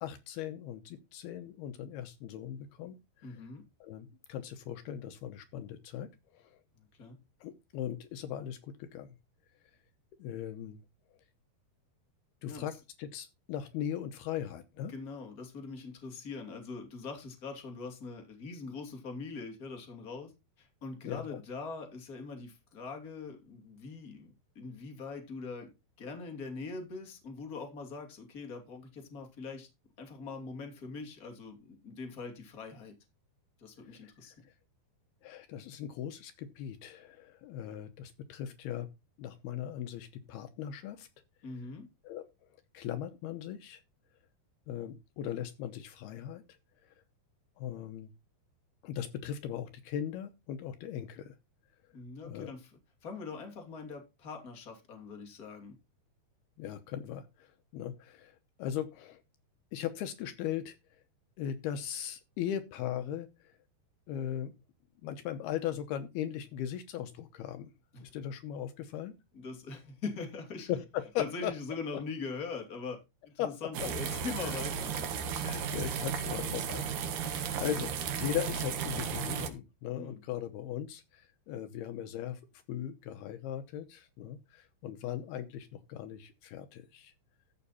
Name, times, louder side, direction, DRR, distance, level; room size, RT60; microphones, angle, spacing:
voice 1, 0.0-3.0 3.2-3.4 3.8-6.6 7.4-9.1 10.2-10.8 12.4-14.9 21.0-21.4 33.9-34.4 35.2-38.9 39.2-41.1 42.0-42.2 42.7-43.8 44.7-46.6 47.6-48.1 48.8-51.4 52.2-52.5 56.6-59.2 59.7-60.8 61.4-63.5 64.1-64.5 65.0-67.7 68.0-69.1 70.7-71.5 73.4-73.5 73.8-73.9 74.4-74.6 75.4-82.4 82.7-87.1, left 10 dB, 75° left, 2.7 m, -39 dB
voice 2, 3.2-3.6 6.8-7.2 12.5-12.7 14.9-20.3 20.6-25.7 26.0-29.7 30.0-32.9 33.6-34.3 41.4-41.9 51.9-52.7 53.0-55.7 67.9-68.1 69.3-70.7 71.2-73.0 73.2-75.1 79.9-80.2, left 4 dB, 25° left, 2.4 m, -42 dB
sound 1, 73.7-79.5, right 7 dB, 60° right, 2.5 m, -35 dB
14.0 x 6.4 x 4.2 m
omnidirectional pair, 4.8 m